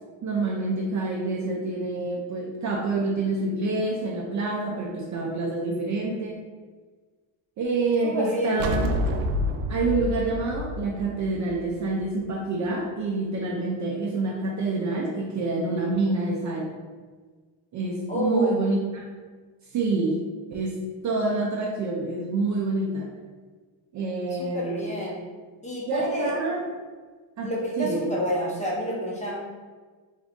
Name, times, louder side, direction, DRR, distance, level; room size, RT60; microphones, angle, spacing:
voice 1, 0.2-6.4 7.6-8.9 9.7-16.7 17.7-19.1 19.7-20.2 20.5-20.8 21.0-23.1 23.9-24.8 25.9-26.6 27.4-27.5 27.8-28.1, right 3 dB, 40° right, -2 dB, 0.5 m, -27 dB
voice 2, 8.0-8.7 18.1-18.6 24.4-25.2 25.6-26.3 27.4-29.4, equal, 15° left, -4 dB, 0.7 m, -29 dB
sound 1, 8.6-12.0, equal, 90° right, 0.5 m, -28 dB
3.5 x 2.5 x 3.6 m, 1.4 s
cardioid pair, 140°, 47 cm